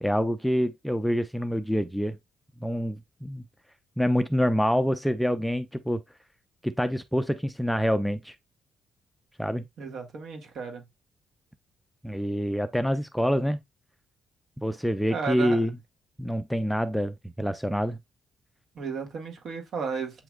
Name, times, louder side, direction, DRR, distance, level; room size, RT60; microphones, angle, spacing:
voice 1, 0.0-2.2 2.6-3.4 4.0-6.0 6.6-8.3 9.4-9.6 12.0-13.6 14.6-15.8 16.2-18.0, equal, ahead, 0.4 m, -26 dB
voice 2, 9.8-10.8 15.1-15.6 18.7-20.2, right 5 dB, 65° right, 1.6 m, -34 dB
7.7 x 3.0 x 2.3 m
cardioid pair, 90°, 0 cm